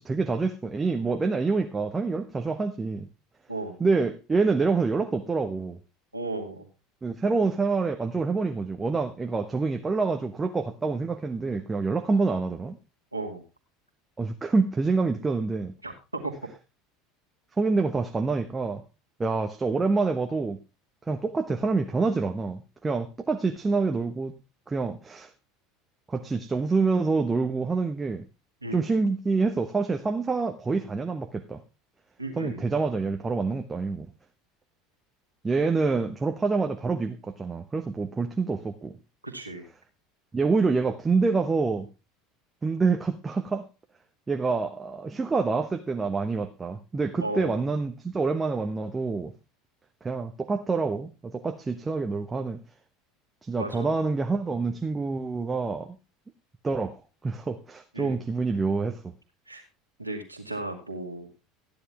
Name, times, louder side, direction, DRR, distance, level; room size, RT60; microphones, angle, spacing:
voice 1, 0.0-3.1 3.8-5.8 7.0-12.8 14.2-15.7 17.6-18.8 19.2-20.6 21.1-24.3 24.7-25.3 26.1-28.2 28.7-31.6 32.4-34.1 35.4-39.0 40.3-41.9 42.6-43.7 44.3-49.3 50.0-52.6 53.4-56.0 56.6-59.0, right 4 dB, 20° right, 6 dB, 1.1 m, -27 dB
voice 2, 6.1-6.7 13.1-13.4 15.8-16.4 28.6-28.9 32.2-32.6 39.2-39.6 47.2-47.6 53.6-53.9 57.9-58.2 59.5-59.6 60.0-61.3, right 2 dB, 90° right, 2 dB, 2.3 m, -35 dB
14.0 x 10.0 x 3.5 m, 0.29 s
figure-of-eight pair, 70°, 0 cm